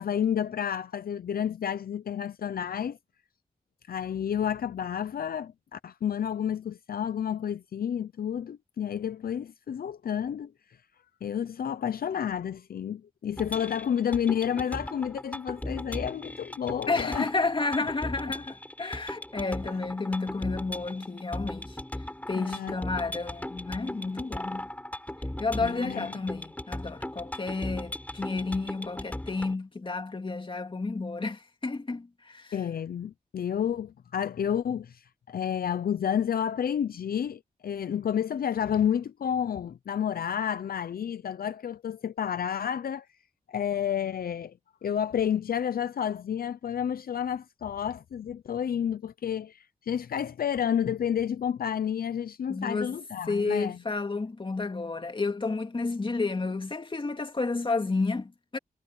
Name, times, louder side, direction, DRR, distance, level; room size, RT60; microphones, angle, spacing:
voice 1, 0.0-3.0 3.9-10.5 11.2-17.3 22.4-22.7 25.6-26.1 32.5-43.1 43.5-44.5 44.8-53.8, left 8 dB, 70° left, 0.6 m, -30 dB
sound 1, 13.4-29.5, left 1 dB, 10° left, 4.1 m, -38 dB
voice 2, 16.9-21.8 22.3-24.7 25.4-32.6 52.5-53.0 53.3-58.6, left 3 dB, 35° left, 2.3 m, -31 dB
wide cardioid pair, 90°, 16 cm